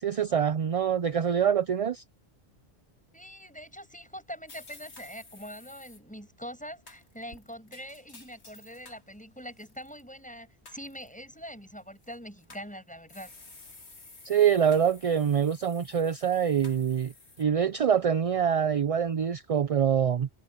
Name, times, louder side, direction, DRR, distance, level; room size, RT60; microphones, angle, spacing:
voice 1, 0.0-2.0 14.2-17.1 17.4-20.3, right 8 dB, 45° right, 0.4 m, -25 dB
voice 2, 3.1-13.3, equal, 5° left, 6.6 m, -43 dB
sound 1, 4.5-6.0 6.9-9.0 9.5-10.0 10.7-11.1 12.0-12.7 13.1-17.4, left 3 dB, 75° left, 2.9 m, -52 dB
omnidirectional pair, 1.1 m